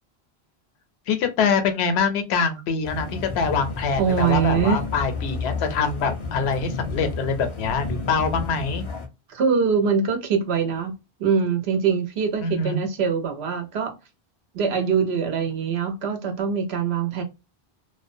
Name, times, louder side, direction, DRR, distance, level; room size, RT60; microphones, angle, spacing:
voice 1, 1.1-8.8 12.4-12.8, left 5 dB, 90° left, 0.9 m, -24 dB
sound 1, 2.8-9.1, left 3 dB, 40° left, 0.5 m, -32 dB
voice 2, 4.0-4.8 9.3-10.9 11.2-13.9 14.5-17.2, right 6 dB, 80° right, 1.0 m, -23 dB
2.3 x 2.2 x 2.5 m
omnidirectional pair, 1.1 m